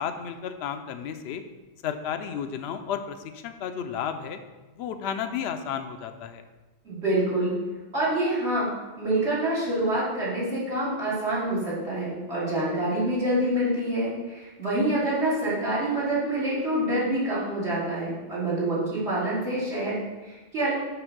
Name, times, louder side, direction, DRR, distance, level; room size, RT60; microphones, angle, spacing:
voice 1, 0.0-1.4 1.8-4.4 4.8-6.4, left 8 dB, 70° left, 8 dB, 0.8 m, -32 dB
voice 2, 6.8-7.5 7.9-8.7 9.0-20.7, right 1 dB, 75° right, -9 dB, 2.8 m, -26 dB
7.0 x 3.6 x 5.9 m, 1.2 s
omnidirectional pair, 1.2 m